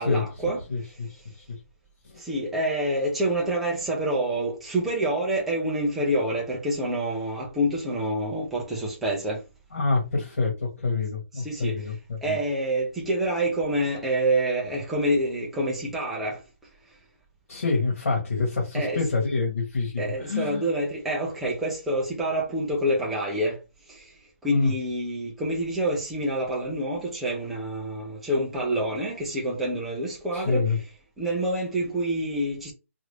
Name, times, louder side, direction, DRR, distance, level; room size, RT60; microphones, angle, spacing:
voice 1, 0.0-0.6 2.2-9.4 11.4-11.8 12.2-16.4 18.7-19.0 20.0-23.6 23.9-24.1 24.4-30.6 31.2-32.7, right 1 dB, ahead, 0.3 m, -27 dB
voice 2, 0.7-1.4 2.0-2.1 9.7-12.4 17.5-20.7 24.5-24.7 30.3-30.8, left 3 dB, 70° left, 1.4 m, -27 dB
2.9 x 2.4 x 3.2 m
hypercardioid pair, 175°, 8 cm